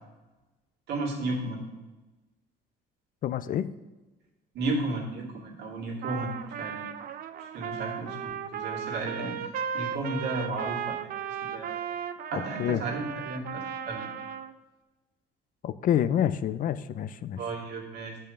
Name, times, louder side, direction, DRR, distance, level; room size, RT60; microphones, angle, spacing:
voice 1, 0.9-1.6 4.5-6.3 6.6-6.8 7.4-9.3 9.7-11.0 11.2-11.8 12.3-14.1 17.4-18.2, right 2 dB, 80° right, -2 dB, 2.7 m, -33 dB
voice 2, 3.2-3.7 9.2-9.3 12.3-12.8 15.6-17.4, left 10 dB, 55° left, 14 dB, 0.5 m, -28 dB
Trumpet, 6.0-14.5, right 8 dB, 60° right, 0.6 m, -36 dB
9.0 x 5.5 x 6.5 m, 1.1 s
cardioid pair, 110°, 17 cm